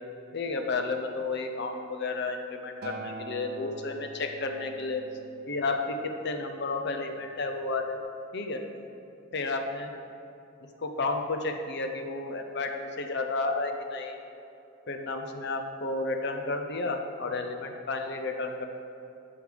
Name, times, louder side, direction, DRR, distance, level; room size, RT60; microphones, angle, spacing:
voice 1, 0.3-5.0 5.5-8.0 8.3-8.6 9.3-9.9 10.8-14.2 14.9-18.7, left 3 dB, 55° left, 5 dB, 0.6 m, -32 dB
Acoustic guitar, 2.8-7.1 8.0-8.1, right 3 dB, 50° right, 0.6 m, -45 dB
8.2 x 5.5 x 5.0 m, 2.8 s
head